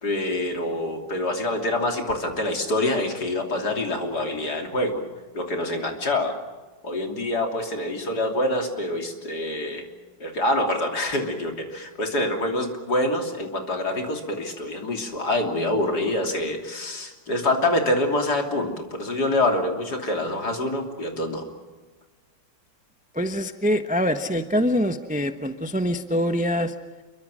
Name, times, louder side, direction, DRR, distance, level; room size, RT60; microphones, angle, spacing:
voice 1, 0.0-5.0 5.3-6.3 6.8-9.9 10.2-21.5, left 1 dB, 55° left, 3 dB, 3.6 m, -26 dB
voice 2, 23.1-26.7, equal, 5° right, 7 dB, 0.7 m, -24 dB
28.5 x 23.5 x 6.3 m, 1.3 s
omnidirectional pair, 2.0 m